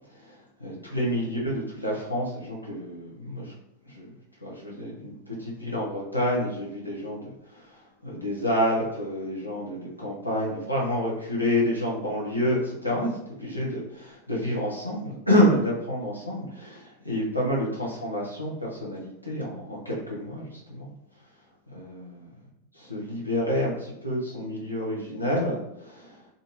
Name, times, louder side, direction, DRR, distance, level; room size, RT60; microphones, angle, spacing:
voice 1, 0.1-3.5 3.9-4.1 4.4-20.9 21.7-22.3 22.7-26.2, equal, 85° left, -4 dB, 0.7 m, -28 dB
2.6 x 2.5 x 2.9 m, 0.81 s
figure-of-eight pair, 90°, 0 cm